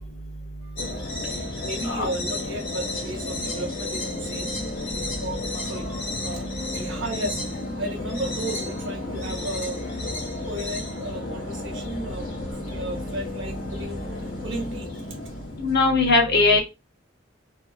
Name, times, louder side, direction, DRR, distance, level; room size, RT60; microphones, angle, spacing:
sound 1, 0.8-15.8, left 2 dB, 75° left, 1.2 m, -32 dB
voice 1, 1.6-4.6 4.9-6.5 6.7-9.8 10.4-12.3 12.7-15.2 16.3-16.4, right 1 dB, 65° right, 1 dB, 0.9 m, -34 dB
voice 2, 15.6-16.6, left 3 dB, 55° left, 2 dB, 0.7 m, -19 dB
2.6 x 2.3 x 2.4 m, 0.24 s
head